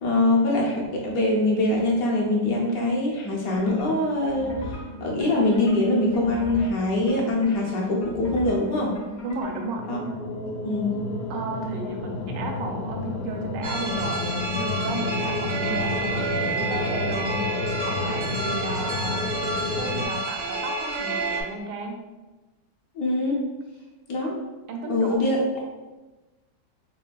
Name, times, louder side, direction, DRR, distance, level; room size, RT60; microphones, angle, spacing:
voice 1, 0.0-4.5 5.0-9.0 9.9-10.0 10.6-10.9 23.0-23.4 24.1-24.3 24.8-25.4, left 2 dB, 65° left, -2 dB, 1.0 m, -23 dB
sound 1, 3.5-9.8, left 1 dB, 45° left, 0.6 m, -38 dB
voice 2, 9.2-9.9 11.3-17.5 17.8-19.3 19.7-22.0 24.7-25.3, right 3 dB, 80° right, 3 dB, 1.2 m, -34 dB
sound 2, 9.8-20.1, left 3 dB, 85° left, 1.3 m, -30 dB
sound 3, 13.6-21.4, right 2 dB, 45° right, 0.5 m, -29 dB
6.1 x 2.2 x 2.3 m, 1.1 s
omnidirectional pair, 2.0 m